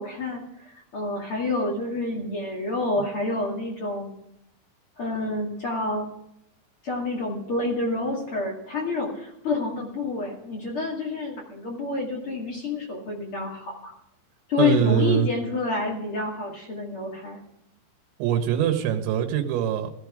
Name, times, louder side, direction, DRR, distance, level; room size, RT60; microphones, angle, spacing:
voice 1, 0.0-4.1 5.0-6.1 6.8-13.9 14.5-17.4, left 3 dB, 40° left, -2 dB, 2.3 m, -28 dB
voice 2, 14.6-15.3 18.2-19.9, right 9 dB, 75° right, 6 dB, 3.5 m, -23 dB
15.5 x 13.5 x 5.0 m, 0.82 s
omnidirectional pair, 5.3 m